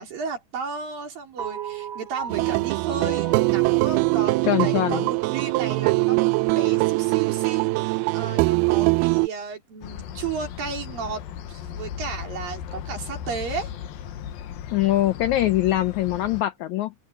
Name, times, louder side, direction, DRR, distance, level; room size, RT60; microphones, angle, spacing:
voice 1, 0.0-11.2 11.5-13.7, right 6 dB, 65° right, 5.9 m, -33 dB
sound 1, 1.4-5.8, right 10 dB, 35° right, 2.7 m, -35 dB
sound 2, 2.3-9.3, right 24 dB, 90° right, 2.5 m, -22 dB
voice 2, 4.4-5.1 14.7-16.9, left 14 dB, 90° left, 1.6 m, -23 dB
sound 3, 9.8-16.4, left 8 dB, 75° left, 2.9 m, -36 dB
open air
omnidirectional pair, 4.3 m